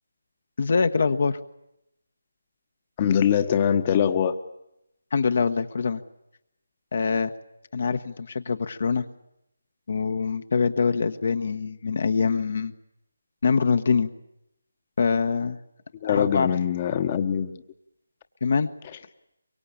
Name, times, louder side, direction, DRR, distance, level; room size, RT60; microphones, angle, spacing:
voice 1, 0.6-1.4 5.1-6.0 6.9-7.3 7.7-9.0 9.9-12.7 13.4-14.1 15.0-15.6 16.1-16.5 18.4-18.7, left 5 dB, 50° left, 9 dB, 1.2 m, -24 dB
voice 2, 3.0-4.3 16.0-17.6, left 8 dB, 30° left, 9 dB, 1.2 m, -23 dB
24.0 x 23.5 x 8.7 m, 0.83 s
figure-of-eight pair, 155°, 0 cm